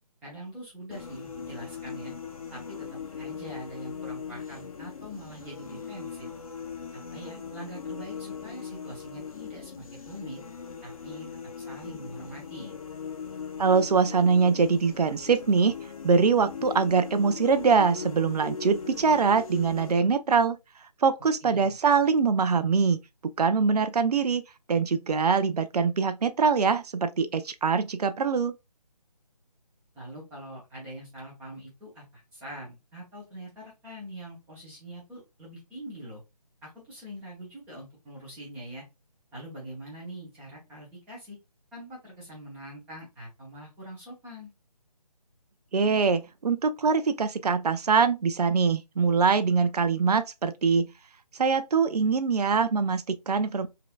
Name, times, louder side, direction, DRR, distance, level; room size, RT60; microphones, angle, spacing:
voice 1, 0.2-2.1 2.5-6.3 6.9-10.4 10.8-11.3 11.6-12.7 21.4-21.7 29.9-36.2 36.6-38.8 39.3-41.4 41.7-44.5, right 1 dB, 5° right, 0.8 m, -43 dB
sound 1, 0.9-19.9, left 6 dB, 60° left, 0.7 m, -40 dB
voice 2, 13.6-15.8 16.0-20.6 21.0-23.0 23.4-24.4 24.7-28.5 45.7-50.9 51.4-53.7, right 5 dB, 75° right, 0.5 m, -23 dB
4.0 x 2.6 x 2.3 m
figure-of-eight pair, 155°, 21 cm